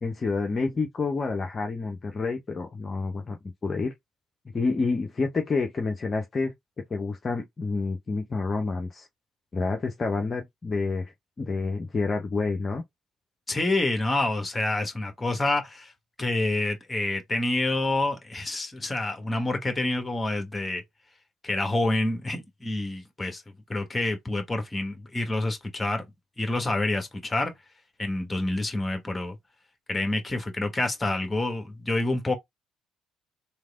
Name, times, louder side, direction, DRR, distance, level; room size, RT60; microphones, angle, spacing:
voice 1, 0.0-3.9 4.5-6.5 6.9-9.1 9.5-12.8, left 4 dB, 35° left, 0.6 m, -29 dB
voice 2, 13.5-15.9 16.2-20.8 21.4-23.4 23.7-26.0 26.4-27.5 28.0-29.4 29.9-32.4, left 2 dB, 20° left, 1.1 m, -27 dB
3.3 x 2.8 x 2.3 m
figure-of-eight pair, 50°, 0 cm